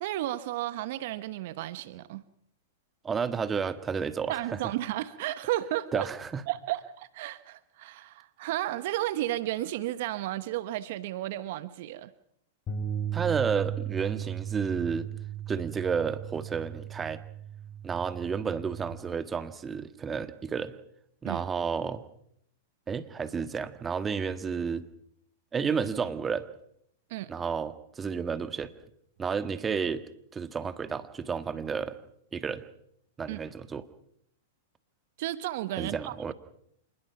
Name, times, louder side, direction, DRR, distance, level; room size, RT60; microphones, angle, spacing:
voice 1, 0.0-2.2 4.3-6.1 6.5-12.1 21.2-21.4 27.1-27.3 33.3-33.4 35.2-36.3, right 15 dB, 60° right, 14 dB, 1.0 m, -33 dB
voice 2, 3.0-4.6 5.9-6.4 13.1-15.1 15.5-17.2 17.8-20.7 21.2-22.0 22.9-24.8 25.5-26.5 27.3-28.7 29.2-30.0 30.3-32.0 32.3-32.6 33.2-33.9 35.7-36.3, right 6 dB, 20° right, 11 dB, 1.6 m, -31 dB
sound 1, 12.7-18.9, right 9 dB, 30° left, 6.6 m, -36 dB
27.0 x 20.5 x 5.9 m, 0.71 s
hypercardioid pair, 110°, 0 cm